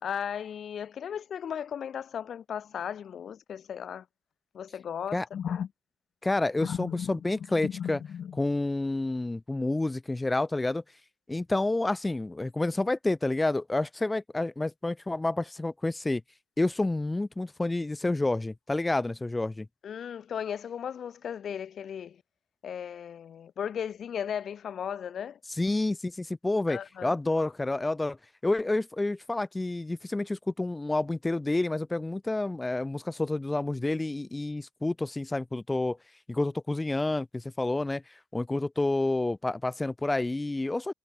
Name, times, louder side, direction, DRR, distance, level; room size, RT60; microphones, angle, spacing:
voice 1, 0.0-4.1 4.5-5.7 6.6-7.2 7.6-8.4 19.8-22.2 22.6-25.4 26.7-27.5, left 8 dB, 45° left, 1.9 m, -36 dB
voice 2, 6.2-8.0 8.4-10.8 11.3-16.2 16.6-19.7 25.6-28.2 28.4-36.0 36.3-38.0 38.3-40.9, left 2 dB, 15° left, 1.8 m, -29 dB
hypercardioid pair, 70°, 0 cm